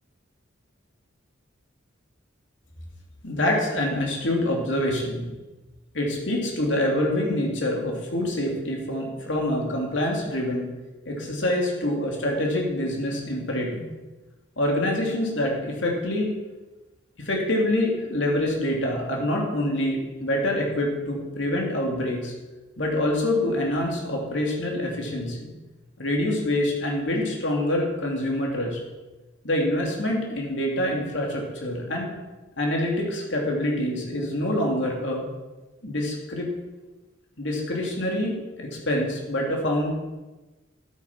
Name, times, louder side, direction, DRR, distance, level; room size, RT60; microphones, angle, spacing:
voice 1, 3.2-5.3 5.9-10.6 11.0-13.9 14.6-16.3 17.2-22.3 22.8-25.5 26.0-28.8 29.4-32.1 32.6-35.3 35.8-36.5 37.4-39.9, left 1 dB, 65° left, -1 dB, 3.0 m, -26 dB
12.5 x 8.8 x 6.0 m, 1.1 s
head